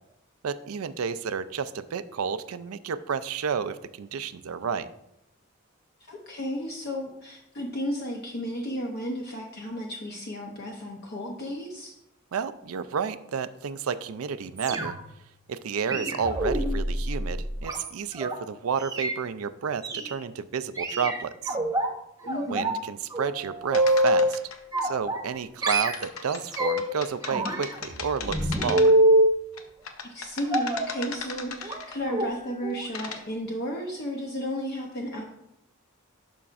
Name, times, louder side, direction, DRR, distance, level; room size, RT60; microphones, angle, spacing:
voice 1, 0.4-4.9 12.3-14.9 15.5-21.6 22.5-24.4 24.8-29.0, right 6 dB, 80° right, 13 dB, 0.4 m, -31 dB
voice 2, 6.1-11.9 22.2-22.8 30.0-35.2, equal, 50° left, 0 dB, 0.8 m, -33 dB
sound 1, 14.6-15.2 15.9-18.3 18.8-19.1 19.8-20.1 20.8-21.9 22.3-22.8 23.1-24.3 24.7-25.4 25.6-26.9 27.2-29.3 30.5-30.9 31.6-31.8 32.1-32.3 32.6-32.8 33.1-33.2, right 1 dB, 20° right, 0.8 m, -25 dB
sound 2, 23.7-24.8 25.9-29.1 29.6-32.1 32.7-33.2, left 5 dB, 75° left, 0.8 m, -38 dB
11.0 x 5.8 x 2.5 m, 0.82 s
head